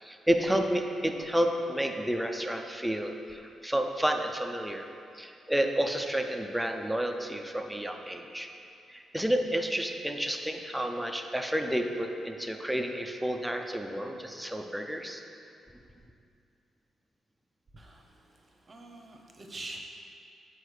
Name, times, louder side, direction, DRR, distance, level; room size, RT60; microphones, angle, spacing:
voice 1, 0.0-4.8 5.1-8.5 8.9-15.2, right 1 dB, 5° right, 4 dB, 0.5 m, -30 dB
voice 2, 17.7-19.8, right 2 dB, 25° right, 1 dB, 0.8 m, -45 dB
8.0 x 4.8 x 4.9 m, 2.5 s
cardioid pair, 145°, 0 cm